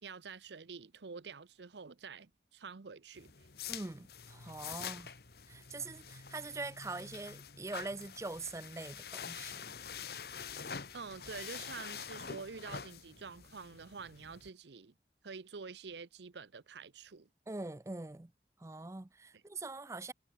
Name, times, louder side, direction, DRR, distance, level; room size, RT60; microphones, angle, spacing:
voice 1, 0.0-3.3 4.8-4.9 10.9-14.9 15.2-17.3 19.3-19.4, right 5 dB, 85° right, 0.7 m, -47 dB
sound 1, 3.1-14.5, left 7 dB, 65° left, 1.6 m, -46 dB
voice 2, 3.7-5.1 5.5-9.7 17.5-18.3 18.6-20.1, right 3 dB, 15° right, 0.4 m, -43 dB
head